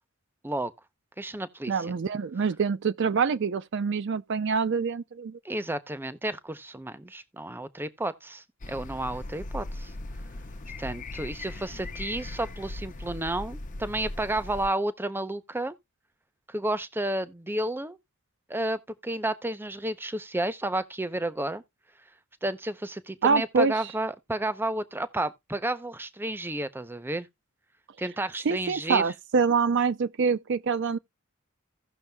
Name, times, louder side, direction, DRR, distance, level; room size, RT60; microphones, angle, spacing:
voice 1, 1.2-1.7 5.4-9.9 10.8-15.7 16.5-18.0 18.5-21.6 22.4-27.3 28.0-29.1, right 1 dB, 10° right, 0.6 m, -31 dB
voice 2, 1.7-5.4 23.2-23.7 28.4-31.0, right 5 dB, 60° right, 0.4 m, -25 dB
sound 1, 8.6-14.7, left 2 dB, 40° left, 0.6 m, -39 dB
16.5 x 6.3 x 2.3 m
head